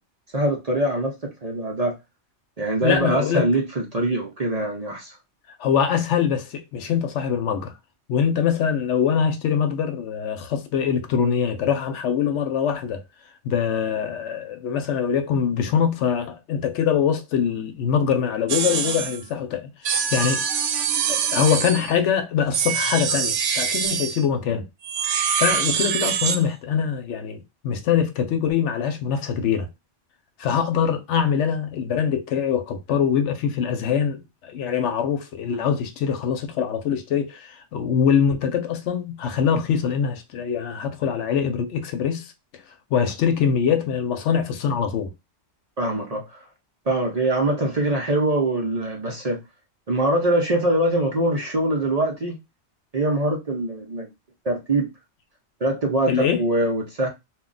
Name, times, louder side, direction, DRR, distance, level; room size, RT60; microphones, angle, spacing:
voice 1, 0.3-1.9 2.6-5.2 45.8-46.4 46.9-49.4 49.9-52.4 52.9-54.1 54.4-54.9 55.6-57.1, right 1 dB, 40° right, 0.6 m, -23 dB
voice 2, 2.8-3.5 5.6-7.8 8.1-13.0 13.4-20.4 21.1-24.7 25.4-29.7 30.4-42.3 42.9-45.1 56.1-56.4, left 7 dB, 80° left, 0.9 m, -23 dB
sound 1, 18.5-19.2 19.9-22.0 22.5-24.2 24.8-26.4, right 7 dB, 80° right, 0.9 m, -24 dB
2.3 x 2.2 x 3.7 m
omnidirectional pair, 1.2 m